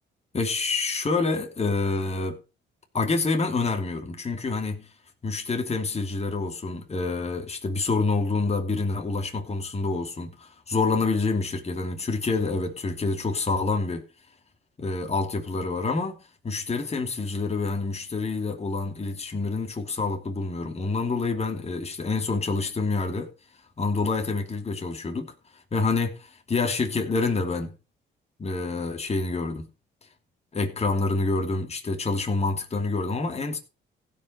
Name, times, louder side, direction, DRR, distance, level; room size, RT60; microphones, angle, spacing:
voice 1, 0.3-2.4 2.9-4.9 5.2-14.0 14.8-23.3 23.8-25.3 25.7-27.7 28.4-29.7 30.5-33.6, left 3 dB, 30° left, 2.9 m, -27 dB
16.0 x 5.5 x 6.6 m
cardioid pair, 90°, 20 cm